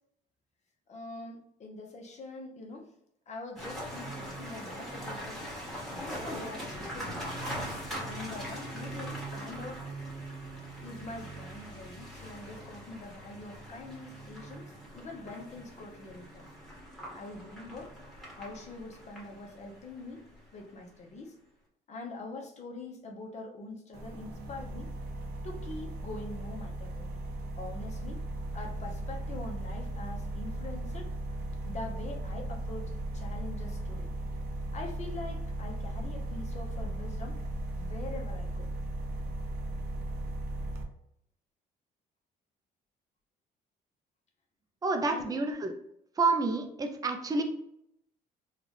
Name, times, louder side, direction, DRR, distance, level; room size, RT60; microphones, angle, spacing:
voice 1, 0.9-2.9 3.3-5.4 6.0-7.5 8.0-9.8 10.8-14.6 14.9-16.5 17.1-17.9 18.4-20.2 20.5-21.3 21.9-24.9 25.4-27.1 27.6-28.2 28.5-31.1 31.6-34.1 34.7-37.4 37.7-38.7 45.1-45.4, left 2 dB, 40° left, 1 dB, 0.9 m, -44 dB
sound 1, 3.6-20.7, right 1 dB, ahead, 1.4 m, -41 dB
sound 2, 23.9-40.8, right 1 dB, 80° right, 0.7 m, -37 dB
voice 2, 44.8-45.8 46.2-47.4, right 3 dB, 20° right, 5 dB, 0.5 m, -29 dB
3.8 x 2.4 x 3.2 m, 0.75 s
cardioid pair, 110°, 17 cm